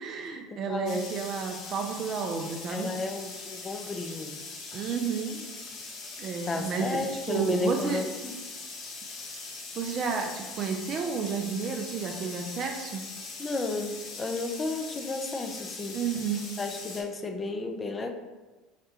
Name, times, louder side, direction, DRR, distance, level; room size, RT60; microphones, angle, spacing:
voice 1, 0.0-2.9 4.7-5.4 6.2-8.0 9.7-13.1 15.9-16.5, right 6 dB, 45° right, 3 dB, 0.4 m, -31 dB
voice 2, 0.7-1.1 2.7-4.4 6.5-8.3 13.4-16.0 16.6-18.1, left 2 dB, 25° left, 5 dB, 0.5 m, -32 dB
sound 1, 0.9-17.0, left 3 dB, 55° left, 0.8 m, -41 dB
4.9 x 2.2 x 2.8 m, 1.2 s
hypercardioid pair, 80°, 0 cm